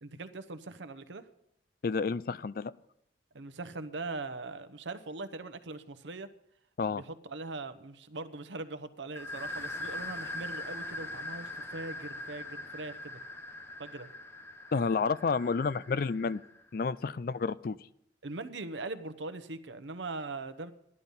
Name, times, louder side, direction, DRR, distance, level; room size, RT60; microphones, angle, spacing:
voice 1, 0.0-1.2 3.3-6.3 6.9-13.2 13.8-14.1 18.2-20.7, right 3 dB, 80° right, 11 dB, 0.9 m, -41 dB
voice 2, 1.8-2.7 6.8-7.0 14.7-16.4 16.7-17.8, left 4 dB, 50° left, 17 dB, 0.4 m, -30 dB
sound 1, 9.2-16.6, left 2 dB, 15° left, 0.9 m, -41 dB
13.5 x 11.0 x 5.5 m, 0.76 s
head